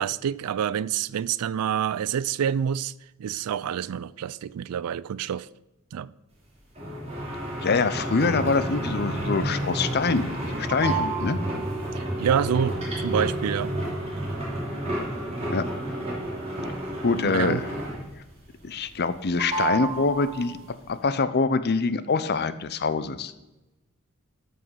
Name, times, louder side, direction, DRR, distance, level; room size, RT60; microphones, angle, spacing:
voice 1, 0.0-2.9 3.2-5.5 5.9-6.1 12.0-13.7 17.2-17.6, right 8 dB, 90° right, 0.4 m, -27 dB
sound 1, 6.8-18.2 18.6-19.1 19.4-20.7, right 1 dB, 30° right, 3.4 m, -30 dB
voice 2, 7.6-10.3 10.5-11.4 15.5-15.7 17.0-17.7 18.6-20.6 20.9-23.3, left 4 dB, 45° left, 0.6 m, -24 dB
13.0 x 5.6 x 5.6 m
head